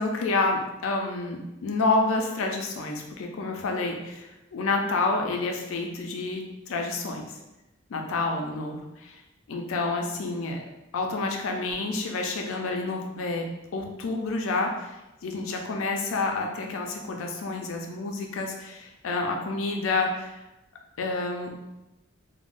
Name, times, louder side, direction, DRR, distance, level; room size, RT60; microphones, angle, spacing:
voice 1, 0.0-7.4 7.9-9.2 9.5-10.6 10.9-13.4 13.7-20.4 21.0-21.5, left 3 dB, 85° left, 2 dB, 0.4 m, -29 dB
3.5 x 2.1 x 2.5 m, 0.95 s
head